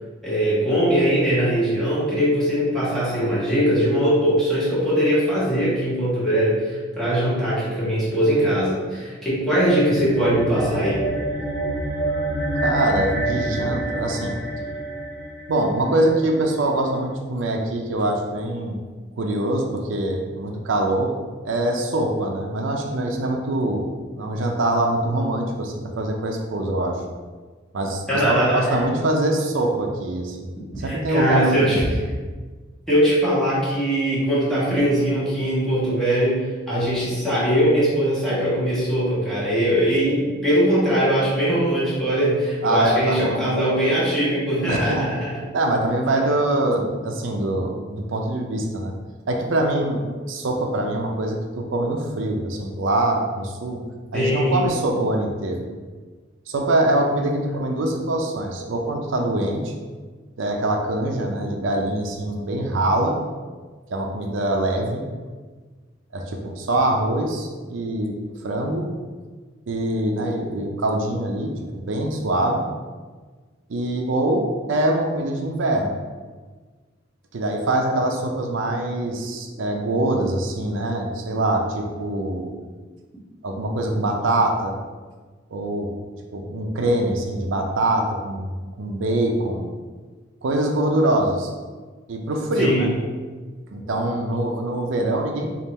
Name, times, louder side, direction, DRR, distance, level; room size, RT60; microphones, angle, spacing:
voice 1, 0.2-11.0 28.1-28.8 30.8-32.1 32.9-45.3 54.1-54.7 92.6-92.9, equal, ahead, -10 dB, 1.3 m, -21 dB
sound 1, 9.5-16.2, right 1 dB, 70° left, 0.7 m, -28 dB
voice 2, 12.6-14.3 15.5-18.8 19.2-21.1 21.4-23.9 24.1-27.0 27.7-30.5 30.8-31.9 42.6-43.5 44.7-45.1 45.5-48.9 49.3-53.8 54.1-55.7 56.5-59.7 60.4-63.2 63.9-65.0 66.1-68.1 68.4-68.9 69.7-72.7 73.7-75.9 77.3-82.5 83.4-84.8 85.5-85.9 86.3-89.7 90.4-91.5 92.1-92.9 93.7-95.5, right 1 dB, 90° right, 2 dB, 0.5 m, -23 dB
3.5 x 2.5 x 4.1 m, 1.4 s
head